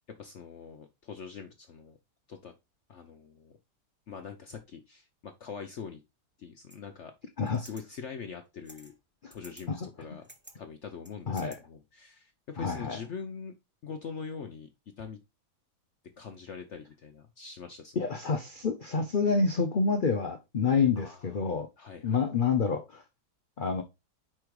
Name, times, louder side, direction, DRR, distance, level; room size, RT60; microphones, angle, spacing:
voice 1, 0.1-2.0 2.3-2.5 2.9-3.6 4.1-6.0 6.4-7.1 7.6-8.9 9.3-10.3 10.6-13.5 13.8-14.7 15.0-15.2 16.2-18.0 21.0-22.2, left 6 dB, 60° left, 0.8 m, -43 dB
sound 1, 6.7-6.8 7.5-7.8 8.6-9.0 9.3-9.6 10.0-10.6 11.0-11.6, right 1 dB, 10° right, 0.7 m, -52 dB
voice 2, 12.6-13.0 18.0-21.7 22.0-23.0 23.6-23.8, left 5 dB, 75° left, 0.4 m, -28 dB
4.9 x 4.3 x 4.6 m
omnidirectional pair, 1.8 m